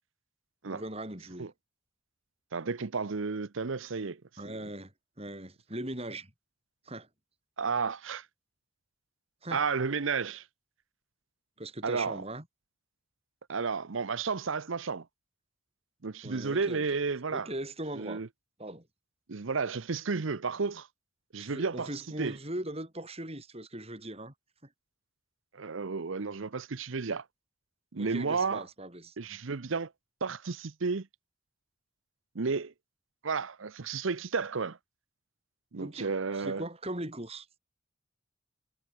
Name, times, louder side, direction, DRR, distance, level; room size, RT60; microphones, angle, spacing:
voice 1, 0.6-1.5 4.4-4.9 5.2-6.3 6.8-7.1 9.4-9.6 11.6-12.4 16.2-16.8 17.3-18.2 18.6-18.9 21.4-24.3 28.0-29.1 35.8-37.6, right 1 dB, 30° right, 6.4 m, -40 dB
voice 2, 2.5-4.5 7.6-8.3 9.5-10.4 11.8-12.2 13.5-15.1 16.0-17.5 17.9-18.3 19.3-20.9 21.3-21.9 22.2-22.4 25.5-27.2 27.9-28.6 29.2-29.9 30.2-31.1 32.3-32.7 33.2-34.8 35.7-36.6, right 4 dB, 75° right, 0.8 m, -32 dB
head